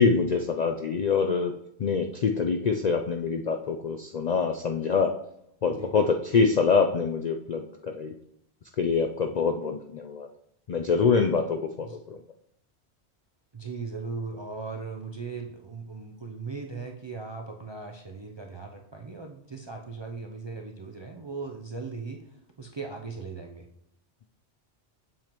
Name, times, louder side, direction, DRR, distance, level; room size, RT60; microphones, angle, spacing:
voice 1, 0.0-1.5 1.8-5.1 5.6-8.1 8.8-10.3 10.7-12.2, left 5 dB, 60° left, 4 dB, 0.4 m, -25 dB
voice 2, 13.5-22.2 22.6-23.7, right 4 dB, 40° right, 2 dB, 0.4 m, -38 dB
7.6 x 7.2 x 3.0 m, 0.76 s
omnidirectional pair, 1.2 m